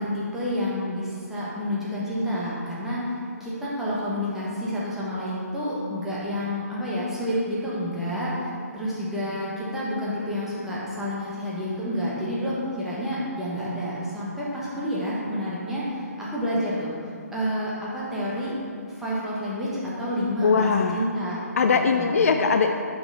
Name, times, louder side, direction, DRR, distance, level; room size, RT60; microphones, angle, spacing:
voice 1, 0.0-16.9 17.3-18.5 18.9-21.4 21.9-22.2, equal, 5° right, -8 dB, 1.2 m, -29 dB
voice 2, 20.4-21.1 21.6-22.7, left 5 dB, 60° left, 5 dB, 0.4 m, -21 dB
5.9 x 4.8 x 5.5 m, 2.4 s
hypercardioid pair, 150°, 9 cm